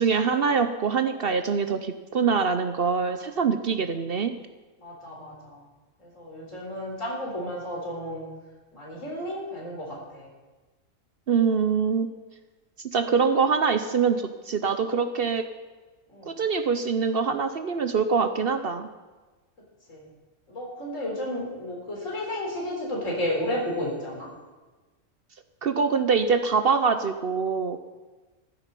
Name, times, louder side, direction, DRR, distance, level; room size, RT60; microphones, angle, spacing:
voice 1, 0.0-4.4 11.3-12.1 12.8-15.5 16.3-18.9 25.6-27.8, right 5 dB, 55° right, 9 dB, 0.8 m, -24 dB
voice 2, 4.8-5.6 6.0-8.2 8.7-10.3 16.1-16.3 19.9-20.1 20.5-24.3, left 1 dB, 75° left, -2 dB, 4.3 m, -32 dB
14.5 x 12.5 x 5.3 m, 1.2 s
omnidirectional pair, 1.3 m